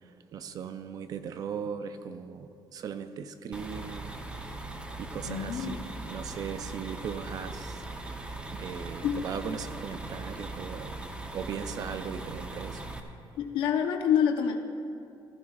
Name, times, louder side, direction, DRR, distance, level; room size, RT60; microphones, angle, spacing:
voice 1, 0.3-4.1 5.0-7.8 8.3-11.0 11.3-12.8, right 7 dB, 50° right, 9 dB, 0.5 m, -38 dB
sound 1, 3.5-13.0, right 2 dB, 15° right, 0.7 m, -40 dB
voice 2, 5.2-5.9 9.0-9.2 13.4-14.6, left 8 dB, 90° left, 4 dB, 0.8 m, -27 dB
15.0 x 14.5 x 2.4 m, 2.5 s
cardioid pair, 150°, 8 cm